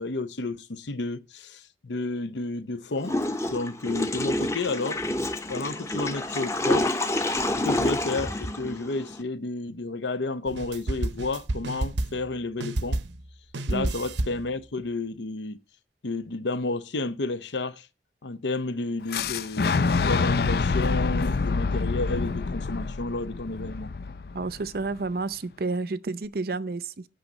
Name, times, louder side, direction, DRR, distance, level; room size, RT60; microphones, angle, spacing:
voice 1, 0.0-3.2 3.4-5.0 5.5-6.9 7.5-13.0 13.7-15.6 16.0-17.9 18.2-19.7 20.0-23.9, left 3 dB, 85° left, 0.8 m, -31 dB
Water / Toilet flush, 3.0-9.2, left 1 dB, 15° left, 0.8 m, -28 dB
sound 1, 10.5-12.3 12.6-13.3 13.5-14.5, right 1 dB, 85° right, 0.8 m, -30 dB
Fire / Explosion, 19.1-25.0, left 4 dB, 60° left, 0.5 m, -26 dB
voice 2, 24.3-27.1, right 3 dB, 55° right, 0.6 m, -30 dB
8.9 x 6.4 x 5.3 m
head